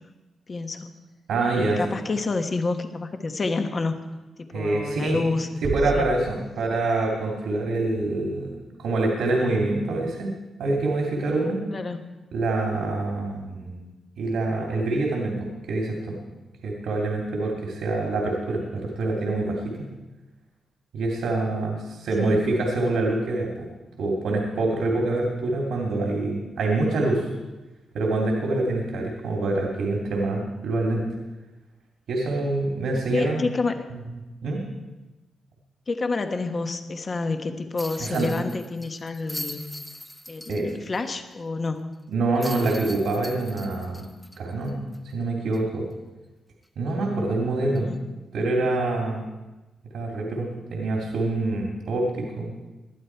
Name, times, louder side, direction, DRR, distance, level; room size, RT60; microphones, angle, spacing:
voice 1, 0.5-1.0 1.5-4.0 4.5-6.1 11.7-12.1 22.2-22.4 33.1-33.8 35.9-39.6 40.3-41.9 47.7-48.0, left 3 dB, 40° left, 7 dB, 1.3 m, -29 dB
voice 2, 1.3-1.8 4.5-5.2 5.6-8.5 8.8-10.3 10.6-11.6 12.3-13.8 14.2-16.2 16.6-19.9 20.9-23.7 24.0-27.3 27.9-31.0 32.1-33.4 34.4-34.6 38.0-38.3 40.5-40.7 42.1-44.0 44.4-44.8 45.1-45.9 46.8-47.9 48.3-49.3 49.9-52.5, right 2 dB, 85° right, 0 dB, 2.8 m, -25 dB
Bass drum, 5.6-7.1, right 5 dB, 55° right, 0.7 m, -33 dB
sound 1, 37.8-41.0 41.3-41.4 42.4-45.1 45.5-45.6 47.7-47.9, left 1 dB, 10° left, 1.2 m, -40 dB
19.5 x 12.0 x 4.7 m, 1.1 s
cardioid pair, 90°, 0 cm